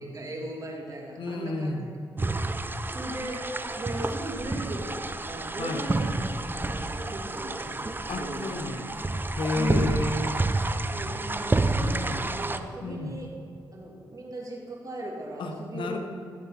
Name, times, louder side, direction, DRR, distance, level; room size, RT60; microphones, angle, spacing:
voice 1, 0.0-1.7 2.9-3.5 3.7-6.1 6.4-8.8 9.5-9.9 10.9-13.3 13.7-16.0, right 1 dB, 45° right, -2 dB, 2.9 m, -37 dB
voice 2, 1.2-1.9 5.6-5.9 8.1-10.3 11.1-12.3 12.8-13.2 15.4-16.0, left 2 dB, 75° left, 4 dB, 1.4 m, -32 dB
sound 1, 2.2-12.6, right 2 dB, 25° right, 0.7 m, -29 dB
15.0 x 7.5 x 4.4 m, 2.4 s
supercardioid pair, 45°, 9 cm